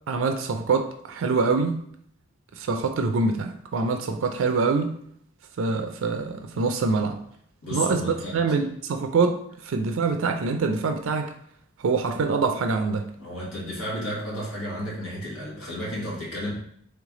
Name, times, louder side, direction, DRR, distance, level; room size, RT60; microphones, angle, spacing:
voice 1, 0.1-1.8 2.6-4.9 5.6-7.2 7.7-11.3 11.8-13.1, right 4 dB, 70° right, 6 dB, 0.4 m, -25 dB
voice 2, 7.6-8.4 13.2-16.5, equal, 90° left, -4 dB, 1.5 m, -32 dB
3.3 x 3.2 x 3.6 m, 0.68 s
head